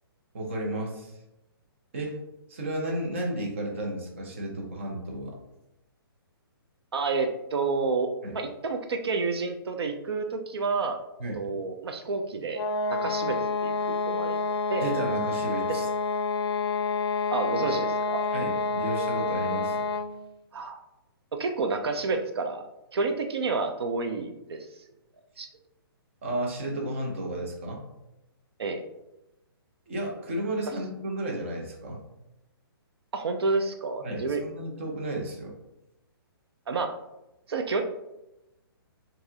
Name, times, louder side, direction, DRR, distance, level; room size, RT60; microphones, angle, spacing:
voice 1, 0.3-1.1 1.9-2.1 2.5-5.4 8.2-8.4 11.2-11.4 14.8-15.9 18.3-19.9 26.2-27.8 29.9-32.0 34.0-35.5, right 1 dB, 30° right, 0 dB, 0.7 m, -33 dB
voice 2, 6.9-11.0 11.3-12.6 12.9-14.4 14.7-14.9 15.7-15.8 17.3-18.2 20.5-20.8 21.3-22.6 22.9-24.7 25.4-25.5 28.6-28.8 33.1-34.4 36.7-36.9 37.5-37.8, right 4 dB, 80° right, 5 dB, 0.5 m, -29 dB
sound 1, 12.5-20.2, left 4 dB, 80° left, 0.4 m, -28 dB
4.6 x 2.6 x 2.8 m, 0.91 s
hypercardioid pair, 180°, 13 cm